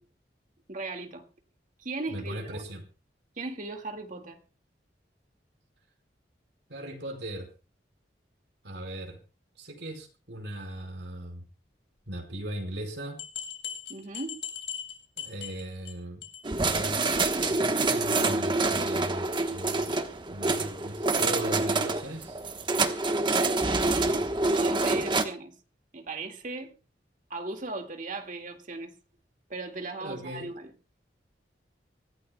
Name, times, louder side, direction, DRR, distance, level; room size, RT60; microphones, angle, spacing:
voice 1, 0.7-1.2 1.8-2.6 3.4-4.4 13.9-14.4 24.5-25.5 25.9-26.7 27.3-28.9 29.5-30.7, right 3 dB, 45° right, 2.0 m, -37 dB
voice 2, 2.1-2.8 6.7-7.5 8.6-9.2 9.6-11.4 12.1-13.2 15.2-16.2 16.7-17.1 17.4-19.9 20.3-22.4 29.8-30.5, right 1 dB, 75° right, 4.8 m, -38 dB
sound 1, 13.2-15.9 16.2-16.5 16.7-16.8 17.1-17.2 17.6-17.7, left 8 dB, 75° left, 3.9 m, -39 dB
sound 2, 16.4-25.2, right 3 dB, 25° right, 1.1 m, -26 dB
25.0 x 15.5 x 2.3 m
head